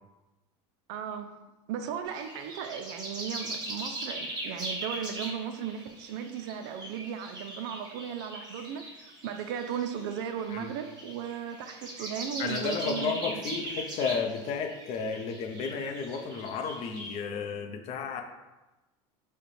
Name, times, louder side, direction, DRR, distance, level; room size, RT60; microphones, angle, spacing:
voice 1, 0.9-1.4 1.7-13.4, right 8 dB, 75° right, 7 dB, 0.4 m, -36 dB
sound 1, 2.0-17.2, right 1 dB, 30° right, 1.1 m, -40 dB
voice 2, 12.4-18.2, left 5 dB, 45° left, 5 dB, 0.5 m, -33 dB
4.8 x 2.1 x 3.1 m, 1.1 s
supercardioid pair, 120°, 15 cm